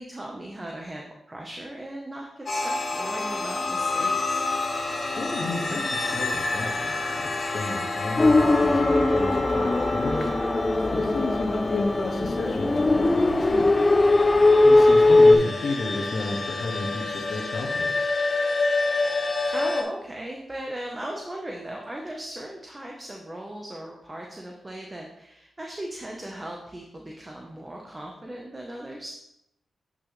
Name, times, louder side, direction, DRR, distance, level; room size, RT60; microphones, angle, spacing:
voice 1, 0.0-4.4 19.4-29.1, right 1 dB, 20° right, -1 dB, 1.0 m, -37 dB
sound 1, 2.5-19.8, left 3 dB, 45° left, 1.3 m, -29 dB
voice 2, 5.2-10.3 10.9-13.7 14.6-18.1, left 2 dB, 65° left, -4 dB, 1.6 m, -32 dB
sound 2, 8.2-15.4, left 2 dB, 25° left, 0.6 m, -19 dB
8.7 x 5.9 x 3.3 m, 0.83 s
cardioid pair, 85°, 0 cm